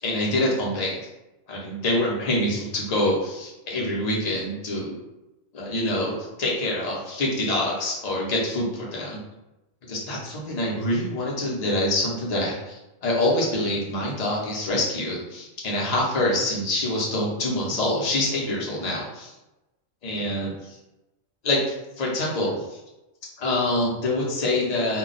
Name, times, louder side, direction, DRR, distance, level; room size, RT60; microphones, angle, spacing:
voice 1, 0.0-1.0 1.5-5.0 5.5-9.2 9.9-19.3 20.0-20.8 21.4-22.8 23.4-25.0, left 1 dB, 40° left, -4 dB, 0.7 m, -26 dB
2.3 x 2.2 x 3.9 m, 0.98 s
omnidirectional pair, 1.4 m